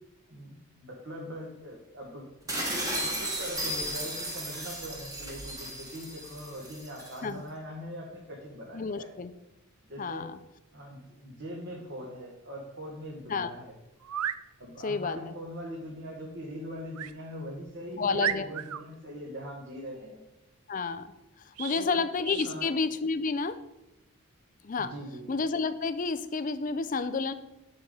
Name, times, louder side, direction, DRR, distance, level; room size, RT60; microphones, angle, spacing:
voice 1, 0.3-2.3 2.7-9.1 9.9-10.3 10.7-13.7 14.6-20.2 21.6-22.0 22.4-22.7 24.8-25.2, equal, 55° right, -2 dB, 1.5 m, -41 dB
sound 1, 2.5-7.2, right 1 dB, 15° right, 1.3 m, -35 dB
voice 2, 8.7-9.3 10.0-10.4 13.3-13.5 14.8-15.3 17.9-18.5 20.7-21.1 21.4-23.6 24.6-24.9 25.3-27.3, left 4 dB, 35° left, 13 dB, 0.4 m, -30 dB
sound 2, 14.0-14.4 16.9-17.2 17.7-17.8 18.2-18.8 21.5-21.8 22.2-22.5, right 10 dB, 90° right, 0.4 m, -33 dB
8.1 x 7.1 x 3.8 m, 0.95 s
head